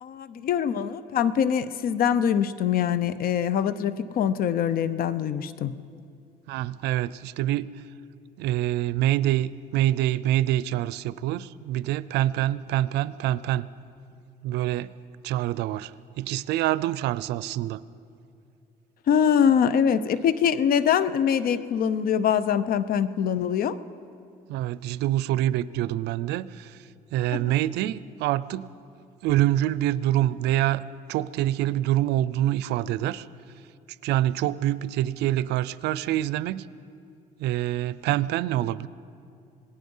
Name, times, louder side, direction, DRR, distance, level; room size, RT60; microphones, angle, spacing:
voice 1, 0.0-5.8 19.1-23.8, left 8 dB, 60° left, 15 dB, 0.8 m, -23 dB
voice 2, 6.5-7.7 8.4-13.7 14.4-14.9 15.2-15.9 16.2-17.8 24.5-26.8 27.1-28.7 29.2-30.8 31.1-33.3 34.0-36.6 37.4-38.9, right 13 dB, 85° right, 18 dB, 0.5 m, -26 dB
26.5 x 18.5 x 5.5 m, 2.5 s
cardioid pair, 110°, 17 cm